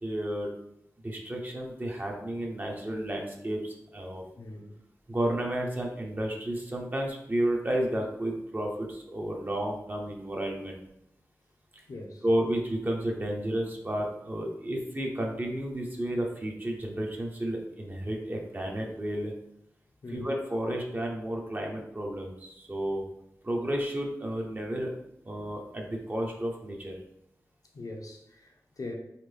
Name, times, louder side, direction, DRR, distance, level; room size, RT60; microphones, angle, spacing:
voice 1, 0.0-0.5 1.0-4.2 5.1-10.8 12.2-19.3 20.1-23.0 23.4-24.9 25.2-26.9, right 1 dB, 30° right, 0 dB, 0.9 m, -32 dB
voice 2, 4.4-4.8 11.9-12.2 20.0-20.3 27.7-28.9, left 2 dB, 75° left, 0 dB, 0.9 m, -41 dB
4.2 x 3.7 x 3.4 m, 0.78 s
wide cardioid pair, 90°, 6 cm